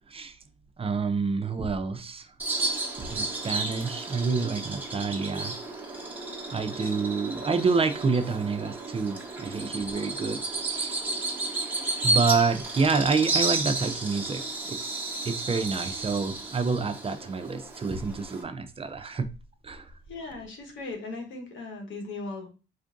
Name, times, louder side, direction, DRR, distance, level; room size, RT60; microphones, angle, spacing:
voice 1, 0.8-2.3 3.0-5.5 6.5-10.4 10.7-10.9 12.0-19.3 19.6-19.9, right 4 dB, 30° right, 0.4 m, -28 dB
Bird vocalization bird call bird song, 2.4-18.4, right 2 dB, 10° right, 1.0 m, -32 dB
voice 2, 20.1-22.5, left 3 dB, 75° left, 1.1 m, -38 dB
4.4 x 2.5 x 2.4 m
cardioid pair, 90°, 20 cm